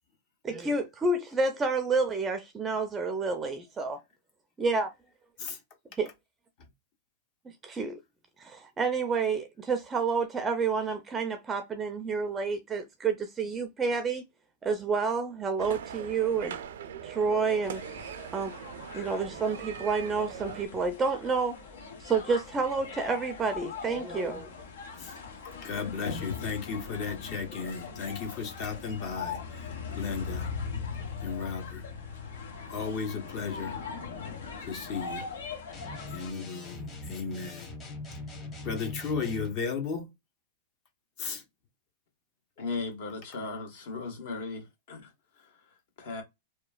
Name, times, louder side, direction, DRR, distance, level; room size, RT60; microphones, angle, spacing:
voice 1, 0.4-4.0 4.6-4.9 6.0-6.1 7.6-8.0 8.4-14.2 14.6-16.6 17.0-17.8 18.3-18.5 18.9-21.6 22.0-24.5, right 4 dB, 20° right, 0.4 m, -29 dB
sound 1, 15.6-20.7, right 8 dB, 80° right, 0.4 m, -41 dB
sound 2, 17.6-36.3, left 5 dB, 85° left, 0.8 m, -40 dB
voice 2, 25.6-30.5 31.2-31.9 32.7-33.8 34.6-35.3 36.1-37.7 38.6-40.1 41.2-41.4, left 5 dB, 45° left, 0.7 m, -35 dB
sound 3, 35.7-39.6, left 2 dB, 25° left, 1.0 m, -41 dB
voice 3, 42.6-45.1 45.4-45.5 46.0-46.2, left 3 dB, 65° left, 1.3 m, -37 dB
2.9 x 2.1 x 2.3 m
hypercardioid pair, 130°, 0 cm